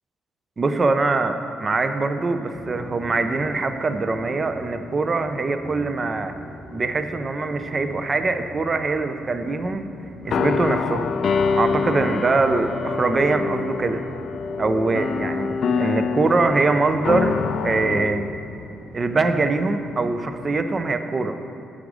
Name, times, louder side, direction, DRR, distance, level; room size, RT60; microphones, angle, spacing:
voice 1, 0.6-6.3 6.7-9.8 10.2-11.1 11.6-14.0 14.6-17.3 17.6-18.3 18.9-21.4, right 3 dB, 35° right, 8 dB, 0.5 m, -23 dB
sound 1, 2.5-20.7, equal, 10° left, 1.0 m, -42 dB
sound 2, 10.2-18.7, left 5 dB, 60° left, 0.3 m, -25 dB
8.5 x 5.0 x 4.9 m, 2.6 s
cardioid pair, 90°, 0 cm